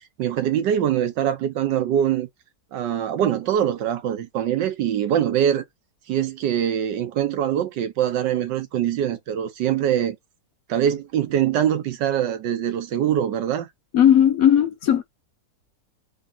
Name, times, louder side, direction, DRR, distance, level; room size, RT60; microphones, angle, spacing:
voice 1, 0.2-2.3 2.7-5.6 6.1-10.2 10.7-13.7, right 10 dB, 80° right, 1.5 m, -23 dB
voice 2, 13.9-15.0, left 10 dB, 65° left, 0.9 m, -16 dB
3.9 x 2.8 x 3.7 m
omnidirectional pair, 1.9 m